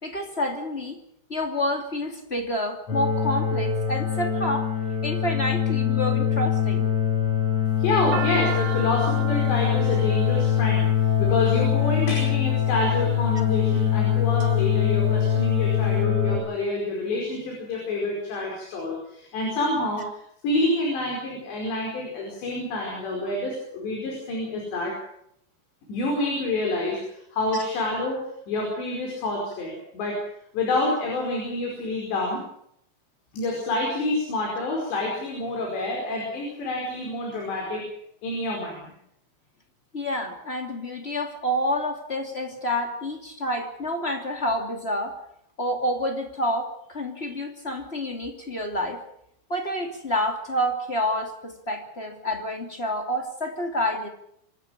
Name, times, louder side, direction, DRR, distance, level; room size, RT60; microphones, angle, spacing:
voice 1, 0.0-1.0 1.3-4.7 5.0-6.9 39.9-45.2 45.6-49.0 49.5-54.1, left 1 dB, 20° left, 4 dB, 2.1 m, -28 dB
sound 1, 2.9-16.4, left 9 dB, 35° left, 6.9 m, -23 dB
sound 2, 7.7-11.9 12.7-13.2 13.8-14.5 14.8-14.9 15.1-15.9, right 8 dB, 90° right, 4.2 m, -36 dB
voice 2, 7.8-10.9 11.2-20.2 20.4-24.9 25.9-30.2 30.5-32.4 33.3-37.9 38.2-38.9 47.2-47.3, left 2 dB, 70° left, -1 dB, 7.2 m, -28 dB
26.5 x 13.0 x 8.8 m, 0.72 s
omnidirectional pair, 5.1 m